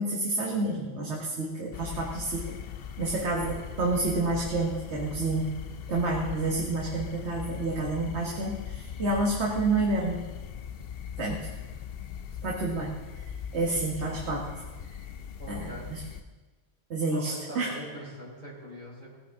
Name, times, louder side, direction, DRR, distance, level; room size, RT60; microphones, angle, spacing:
voice 1, 0.0-2.6 3.0-5.5 5.9-10.2 11.2-11.5 12.4-12.9 13.5-14.5 15.5-16.0 16.9-17.7, right 2 dB, 65° right, -2 dB, 1.8 m, -29 dB
sound 1, 1.7-16.2, left 8 dB, 60° left, 0.8 m, -40 dB
voice 2, 15.4-15.9 17.1-19.2, right 1 dB, 40° right, -6 dB, 4.7 m, -42 dB
18.5 x 11.0 x 3.7 m, 1.2 s
omnidirectional pair, 1.2 m